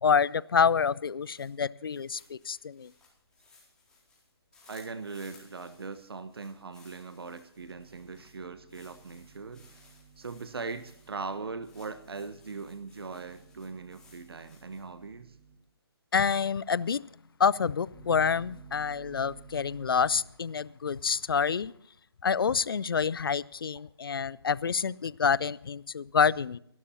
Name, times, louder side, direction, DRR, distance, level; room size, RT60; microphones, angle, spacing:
voice 1, 0.0-2.9 16.1-17.0 17.4-21.7 22.2-26.6, left 6 dB, 60° left, 22 dB, 0.5 m, -27 dB
sound 1, 1.1-15.0, left 3 dB, 5° left, 4.2 m, -61 dB
voice 2, 4.7-9.7 10.2-15.4, right 4 dB, 65° right, 11 dB, 1.2 m, -40 dB
sound 2, 7.5-15.5 17.9-20.2, right 6 dB, 30° right, 4.0 m, -55 dB
25.5 x 12.0 x 2.8 m, 0.67 s
figure-of-eight pair, 140°, 14 cm